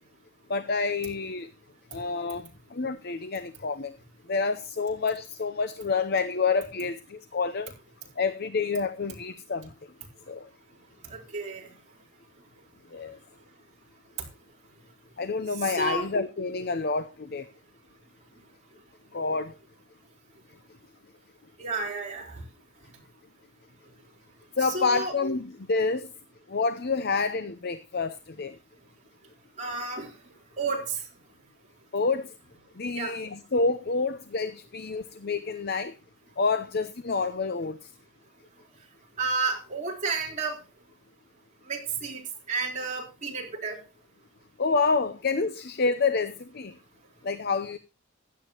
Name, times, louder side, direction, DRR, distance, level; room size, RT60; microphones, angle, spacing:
voice 1, 0.5-1.5 1.9-3.9 4.3-7.7 8.2-9.7 10.3-10.5 12.9-13.2 15.2-17.5 19.1-19.5 24.6-26.1 26.5-28.6 31.9-32.3 32.8-35.9 36.4-37.9 44.6-46.7 47.2-47.8, left 4 dB, 50° left, 11 dB, 0.7 m, -28 dB
voice 2, 11.1-11.7 15.5-16.1 21.6-22.4 24.6-25.2 29.6-30.1 30.6-31.0 32.9-33.2 39.2-40.6 41.7-42.2 42.5-43.8, right 4 dB, 35° right, -2 dB, 4.2 m, -31 dB
15.5 x 11.0 x 3.0 m, 0.29 s
head